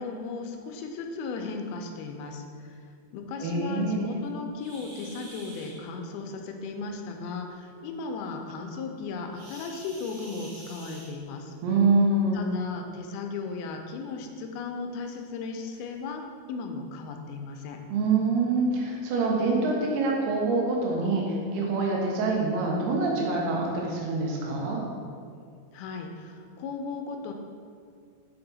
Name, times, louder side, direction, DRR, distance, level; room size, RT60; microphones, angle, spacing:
voice 1, 0.0-2.8 3.1-11.5 12.3-17.8 25.7-27.3, left 4 dB, 85° left, 4 dB, 2.5 m, -36 dB
voice 2, 3.4-4.2 11.6-12.5 17.9-24.8, right 3 dB, 85° right, -1 dB, 3.1 m, -25 dB
sound 1, 4.5-5.8 9.3-11.5 12.8-13.0 13.5-13.6 14.2-14.3 15.1-15.2 15.7-15.9, right 1 dB, 70° right, 3.7 m, -48 dB
6.9 x 5.4 x 3.9 m, 2.2 s
omnidirectional pair, 4.5 m